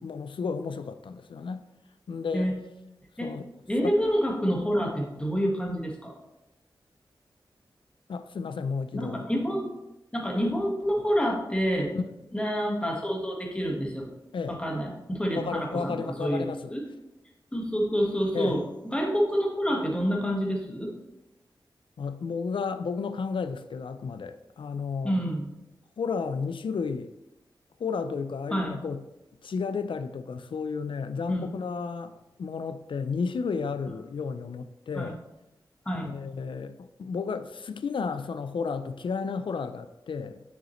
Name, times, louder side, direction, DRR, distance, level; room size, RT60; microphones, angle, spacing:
voice 1, 0.0-1.6 2.1-2.5 3.2-3.5 3.8-3.9 8.1-9.3 11.9-12.0 14.3-14.6 15.3-16.7 18.3-18.6 22.0-25.1 26.0-27.1 27.8-29.0 29.4-32.1 32.4-35.2 36.1-40.4, left 5 dB, 80° left, 0.4 m, -32 dB
voice 2, 3.7-6.1 8.9-9.7 10.1-11.9 12.3-14.1 14.5-16.8 17.5-20.9 25.0-25.5 28.5-28.7 31.3-31.5 34.9-35.2 35.8-36.1, equal, 10° left, 1.4 m, -28 dB
7.0 x 6.3 x 3.1 m
wide cardioid pair, 105°, 8 cm